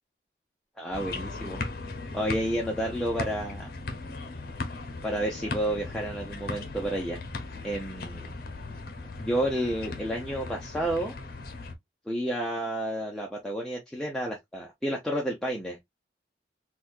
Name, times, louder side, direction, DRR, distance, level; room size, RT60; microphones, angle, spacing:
voice 1, 0.8-1.6 2.1-3.7 5.0-7.2 7.6-8.3 9.2-11.1 12.1-15.8, right 1 dB, 5° left, 0.6 m, -30 dB
sound 1, 0.9-11.7, left 3 dB, 55° left, 0.7 m, -38 dB
4.1 x 2.3 x 2.5 m
head